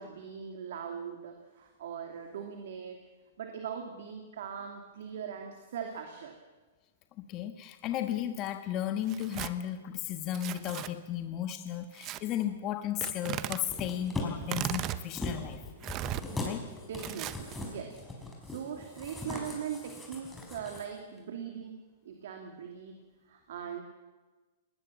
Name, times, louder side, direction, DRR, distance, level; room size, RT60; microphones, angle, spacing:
voice 1, 0.0-3.0 3.4-6.3 16.9-22.9 23.3-23.8, right 7 dB, 70° right, 3 dB, 2.7 m, -41 dB
voice 2, 7.2-15.6 16.4-16.6, left 11 dB, 35° left, 8 dB, 1.3 m, -34 dB
Tearing, 9.0-9.5 10.3-10.9 12.0-12.2 13.0-13.6 14.4-15.0 15.8-16.2 17.0-17.6, right 13 dB, 35° right, 0.9 m, -36 dB
sound 1, 13.7-20.8 21.2-21.3, left 2 dB, 10° left, 5.1 m, -40 dB
20.0 x 19.5 x 7.5 m, 1.3 s
hypercardioid pair, 130°, 0 cm